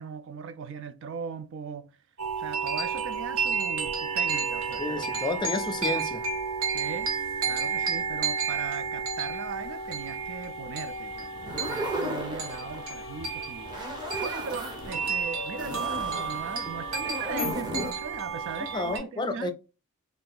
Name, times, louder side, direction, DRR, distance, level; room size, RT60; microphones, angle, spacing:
voice 1, 0.0-1.9 2.4-5.1 6.7-7.1 7.5-19.5, right 5 dB, 60° right, 0.3 m, -39 dB
sound 1, 2.2-19.0, right 5 dB, 90° right, 1.0 m, -31 dB
voice 2, 4.8-6.2 18.7-19.5, left 3 dB, 20° left, 0.3 m, -30 dB
sound 2, 9.4-17.5, left 6 dB, 80° left, 0.6 m, -46 dB
sound 3, 11.3-13.0 13.6-15.1 15.6-17.9, equal, 20° right, 0.7 m, -35 dB
2.6 x 2.3 x 3.5 m
head